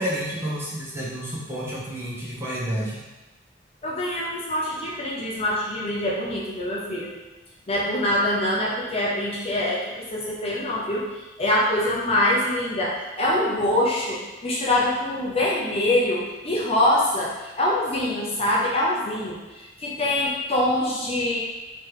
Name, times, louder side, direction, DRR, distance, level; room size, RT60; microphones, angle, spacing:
voice 1, 0.0-3.0, equal, 15° right, -6 dB, 1.0 m, -30 dB
voice 2, 3.8-7.1 7.7-21.4, left 1 dB, 35° left, -5 dB, 0.7 m, -24 dB
3.2 x 3.2 x 4.7 m, 1.1 s
head